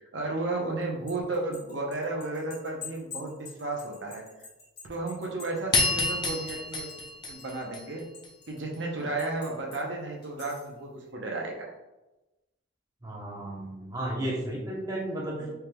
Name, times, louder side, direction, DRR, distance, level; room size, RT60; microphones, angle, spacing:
voice 1, 0.1-4.2 4.9-6.9 7.3-8.1 8.5-11.7, right 2 dB, 70° right, 0 dB, 0.8 m, -33 dB
sound 1, 0.8-7.1 7.4-8.6 9.2-9.8 10.2-10.7, left 6 dB, 55° left, 1.4 m, -46 dB
sound 2, 5.7-8.3, left 3 dB, 25° left, 0.5 m, -29 dB
voice 2, 13.0-15.5, right 1 dB, 20° right, -4 dB, 0.9 m, -33 dB
4.4 x 3.4 x 2.2 m, 1.0 s
head